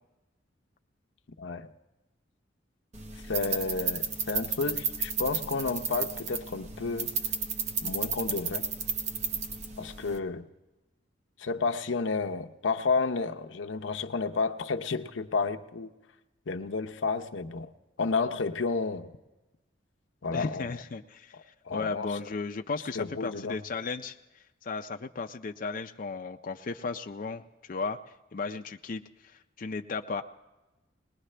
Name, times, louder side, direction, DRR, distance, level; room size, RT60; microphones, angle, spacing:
voice 1, 1.4-1.7 3.3-7.1 7.8-8.7 9.8-10.4 11.4-15.9 16.5-17.7 18.0-19.1 20.2-20.7 21.7-22.1 22.9-23.6, left 4 dB, 90° left, 0.7 m, -31 dB
sound 1, 2.9-10.2, right 5 dB, 40° right, 0.9 m, -33 dB
voice 2, 20.3-28.0 28.3-30.2, left 4 dB, 45° left, 0.5 m, -35 dB
21.0 x 19.5 x 3.3 m
head